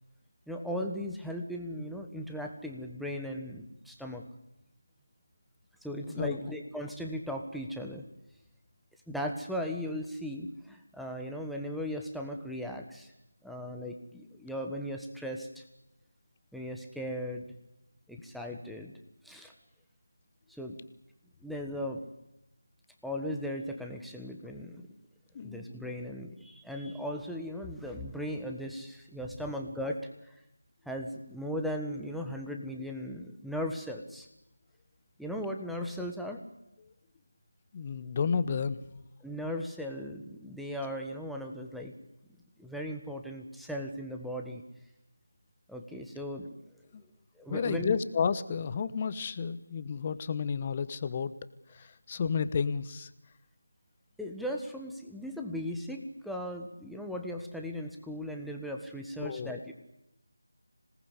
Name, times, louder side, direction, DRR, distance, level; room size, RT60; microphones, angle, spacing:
voice 1, 0.5-4.2 5.8-8.0 9.1-13.1 13.4-15.6 16.5-17.5 18.1-18.9 19.2-19.5 20.5-20.8 21.4-22.0 23.0-24.8 25.4-30.3 30.8-34.3 35.2-36.4 39.2-41.9 42.6-44.6 45.7-46.6 47.3-48.0 54.2-59.7, equal, ahead, 2 dB, 1.5 m, -37 dB
voice 2, 6.1-6.4 25.3-25.6 37.7-38.8 46.9-47.0 47.5-51.3 51.7-53.1 59.2-59.5, left 6 dB, 25° left, 13 dB, 1.1 m, -31 dB
26.5 x 18.5 x 8.3 m, 0.85 s
figure-of-eight pair, 165°, 0 cm